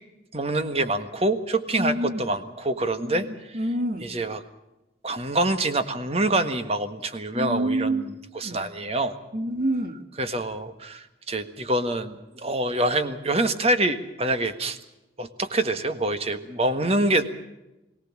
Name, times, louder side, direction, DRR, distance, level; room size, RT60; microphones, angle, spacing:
voice 1, 0.3-3.6 4.0-4.4 5.0-9.1 10.2-14.8 15.2-17.3, right 2 dB, 35° right, 9 dB, 1.5 m, -26 dB
voice 2, 1.8-2.3 3.0-4.1 7.3-8.1 8.4-8.6 9.3-10.0, right 1 dB, 55° right, 7 dB, 1.6 m, -27 dB
22.5 x 17.5 x 7.4 m, 0.97 s
head